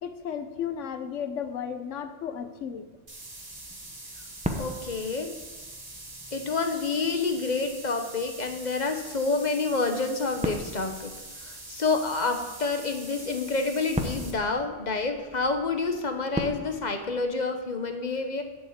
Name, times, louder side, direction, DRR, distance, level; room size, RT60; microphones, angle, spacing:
voice 1, 0.0-2.9, left 8 dB, 85° left, 9 dB, 1.2 m, -34 dB
sound 1, 3.0-17.4, equal, 5° right, 0.7 m, -40 dB
sound 2, 3.1-14.3, right 2 dB, 45° right, 2.2 m, -44 dB
voice 2, 4.6-5.4 6.3-11.1 11.4-18.4, left 3 dB, 40° left, 6 dB, 1.1 m, -28 dB
8.4 x 6.9 x 8.2 m, 1.2 s
omnidirectional pair, 1.2 m